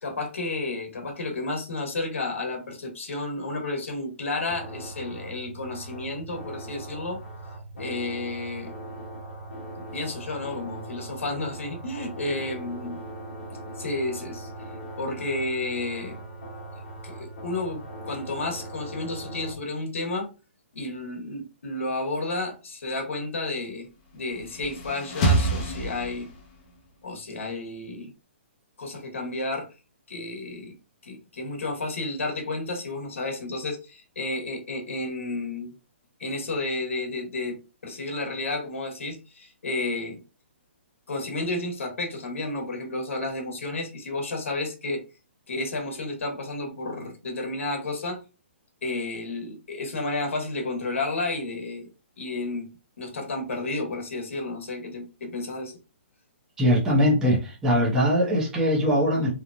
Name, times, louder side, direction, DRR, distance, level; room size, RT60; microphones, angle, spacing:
voice 1, 0.0-7.2 7.7-8.7 9.9-13.0 13.8-14.7 15.0-16.2 16.8-20.3 20.7-23.9 24.1-26.3 27.0-28.1 28.8-29.7 30.1-30.7 31.0-35.7 36.2-40.2 41.1-45.0 45.5-48.2 48.8-51.9 52.2-52.7 53.0-55.8, left 2 dB, 90° left, 3 dB, 1.0 m, -31 dB
sound 1, 4.5-19.5, right 1 dB, 65° left, 1.0 m, -40 dB
sound 2, 24.2-26.6, right 2 dB, 30° left, 0.6 m, -26 dB
voice 2, 56.6-59.3, equal, 10° right, -4 dB, 0.6 m, -21 dB
2.9 x 2.1 x 2.5 m, 0.30 s
hypercardioid pair, 165°, 7 cm